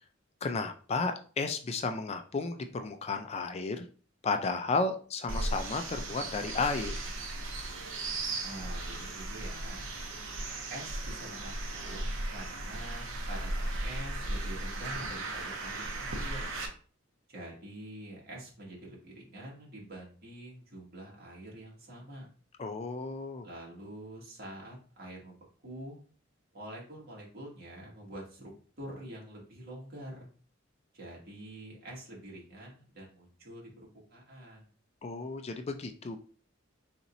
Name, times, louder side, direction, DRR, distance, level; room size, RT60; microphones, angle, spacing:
voice 1, 0.4-3.9 4.2-6.9 22.6-23.5 35.0-36.2, left 3 dB, 30° left, 7 dB, 0.4 m, -33 dB
sound 1, 5.3-16.7, right 2 dB, 70° right, 0.9 m, -36 dB
voice 2, 8.4-9.9 10.7-16.5 17.3-22.3 23.4-26.0 26.5-28.5 28.8-30.3 30.9-34.6, right 1 dB, 50° right, -3 dB, 1.9 m, -46 dB
4.3 x 4.0 x 2.7 m, 0.40 s
head